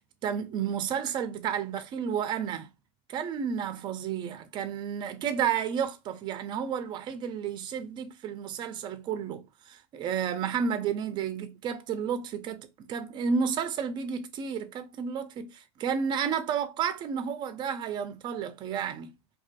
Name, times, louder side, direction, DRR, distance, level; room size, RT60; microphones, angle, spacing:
voice 1, 0.2-2.7 3.1-19.1, right 7 dB, 30° right, 0.4 m, -31 dB
2.4 x 2.3 x 2.4 m
hypercardioid pair, 115°, 15 cm